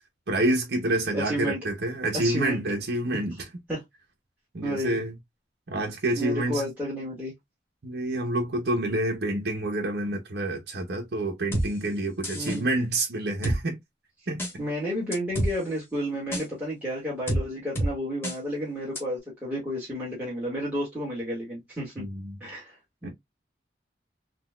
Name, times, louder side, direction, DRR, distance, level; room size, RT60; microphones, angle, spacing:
voice 1, 0.3-3.5 4.5-5.1 5.7-6.6 7.8-13.8 14.3-14.4 22.0-22.4 23.0-23.1, right 1 dB, 70° right, 0.8 m, -28 dB
voice 2, 1.0-1.6 2.1-2.6 3.1-3.2 3.7-3.8 4.6-5.0 6.1-7.3 12.3-12.7 14.6-22.0 22.4-23.1, equal, 10° right, 1.3 m, -31 dB
sound 1, 11.5-11.7 12.2-12.6 13.4-13.6 14.4-14.5 15.1-15.5 16.3-16.4 17.3-17.4 17.8-17.9 18.2-18.4 19.0-19.1, right 1 dB, 15° left, 0.9 m, -26 dB
3.9 x 2.3 x 2.3 m
head